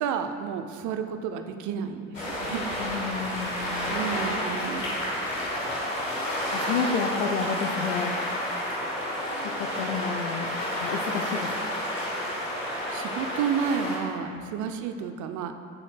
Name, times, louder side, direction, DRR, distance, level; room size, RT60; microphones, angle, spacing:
voice 1, 0.0-2.7 3.4-3.5 3.9-5.0 12.6-15.5, right 7 dB, 50° right, 7 dB, 0.7 m, -31 dB
sound 1, 2.1-14.0, left 1 dB, 90° left, 1.3 m, -30 dB
voice 2, 2.8-3.9 6.5-8.2 8.6-8.7 9.3-10.5 10.8-11.5 14.3-14.5, left 5 dB, 70° left, 3 dB, 0.7 m, -31 dB
14.5 x 7.1 x 2.3 m, 2.3 s
figure-of-eight pair, 50°, 38 cm